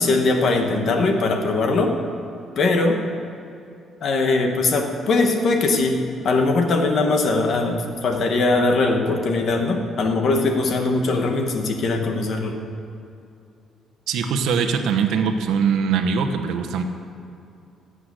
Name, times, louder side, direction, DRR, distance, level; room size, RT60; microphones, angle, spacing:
voice 1, 0.0-1.9 2.6-3.0 4.0-6.0 6.2-12.5, left 3 dB, 45° left, 4 dB, 1.3 m, -20 dB
voice 2, 14.1-16.8, right 6 dB, 65° right, 6 dB, 1.0 m, -22 dB
12.5 x 8.1 x 8.0 m, 2.6 s
cardioid pair, 175°, 0 cm